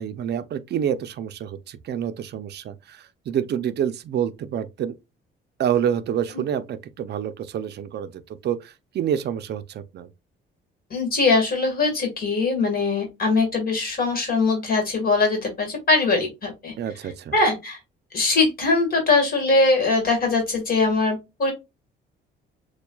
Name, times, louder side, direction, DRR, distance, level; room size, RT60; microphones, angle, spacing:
voice 1, 0.0-4.9 5.6-10.1 16.8-17.3, right 9 dB, 55° right, 0.6 m, -28 dB
voice 2, 10.9-16.7 17.3-17.8 18.1-21.5, left 3 dB, 45° left, 1.7 m, -21 dB
6.9 x 2.3 x 2.3 m
cardioid pair, 100°, 20 cm